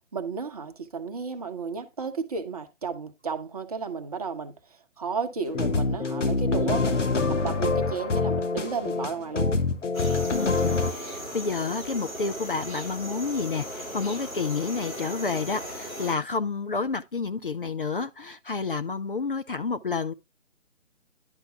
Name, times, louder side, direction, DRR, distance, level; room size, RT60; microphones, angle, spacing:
voice 1, 0.1-7.0 7.3-9.5, right 5 dB, 30° right, 0.9 m, -33 dB
sound 1, 5.5-10.9, left 3 dB, 65° left, 1.4 m, -25 dB
sound 2, 9.9-16.2, equal, 90° left, 3.9 m, -37 dB
voice 2, 10.3-20.1, left 4 dB, 45° left, 0.6 m, -30 dB
10.5 x 5.5 x 3.5 m
figure-of-eight pair, 145°, 40 cm